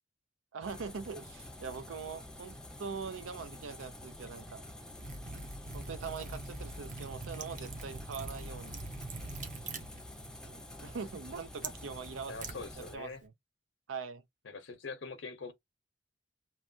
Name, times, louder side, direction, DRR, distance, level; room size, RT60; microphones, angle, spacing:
voice 1, 0.5-4.6 5.7-8.8 10.4-12.3 12.9-13.3 13.9-14.2, right 5 dB, 90° right, 0.5 m, -42 dB
sound 1, 0.6-12.9, left 1 dB, 5° left, 0.4 m, -48 dB
Liquid, 4.9-13.2, right 3 dB, 40° right, 0.7 m, -44 dB
voice 2, 12.3-13.2 14.4-15.5, left 4 dB, 75° left, 0.7 m, -43 dB
3.0 x 2.2 x 2.6 m
head